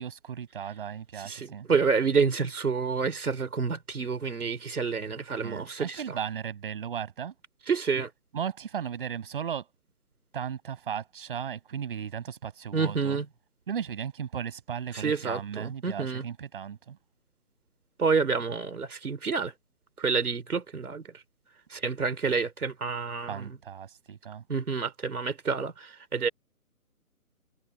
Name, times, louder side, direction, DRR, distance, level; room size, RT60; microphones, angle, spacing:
voice 1, 0.0-1.7 5.4-7.3 8.3-9.7 10.3-13.2 13.7-17.0 23.3-24.4, right 8 dB, 35° right, 5.7 m, -36 dB
voice 2, 1.2-6.2 7.7-8.1 12.7-13.3 14.9-16.2 18.0-19.5 20.0-21.0 21.7-23.6 24.5-26.3, right 5 dB, 75° right, 4.2 m, -28 dB
hypercardioid pair, 170°, 45 cm